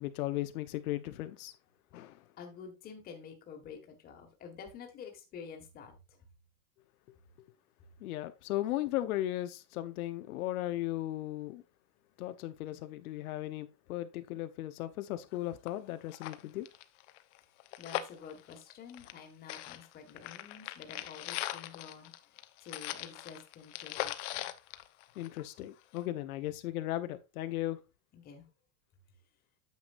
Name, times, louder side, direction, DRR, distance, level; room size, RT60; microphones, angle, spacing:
voice 1, 0.0-1.5 1.9-2.2 8.0-11.6 12.2-16.7 25.2-27.8, left 15 dB, 80° left, 1.0 m, -36 dB
voice 2, 2.4-5.9 12.7-12.8 17.8-22.1 22.6-24.5 28.1-28.5, left 6 dB, 20° left, 1.7 m, -49 dB
sound 1, 15.3-15.4 15.7-15.8 16.1-19.2 19.5-25.6 26.0-26.1, left 15 dB, 55° left, 0.9 m, -40 dB
9.3 x 7.1 x 2.5 m
supercardioid pair, 175°, 42 cm